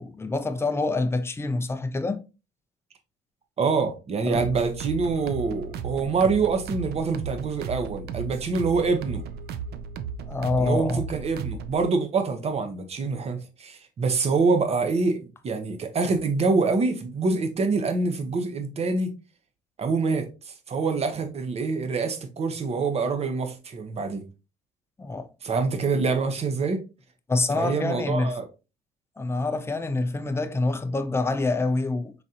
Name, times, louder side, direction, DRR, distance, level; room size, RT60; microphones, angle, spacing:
voice 1, 0.0-2.2 4.3-4.4 10.3-11.0 25.0-25.3 27.3-28.3 29.2-32.1, left 3 dB, 15° left, 0.5 m, -26 dB
voice 2, 3.6-9.2 10.6-19.1 19.8-24.2 25.4-26.8 27.5-28.5, right 4 dB, 40° right, 0.9 m, -25 dB
sound 1, 4.3-11.8, right 6 dB, 70° right, 0.5 m, -35 dB
4.1 x 3.7 x 2.8 m
cardioid pair, 110°, 17 cm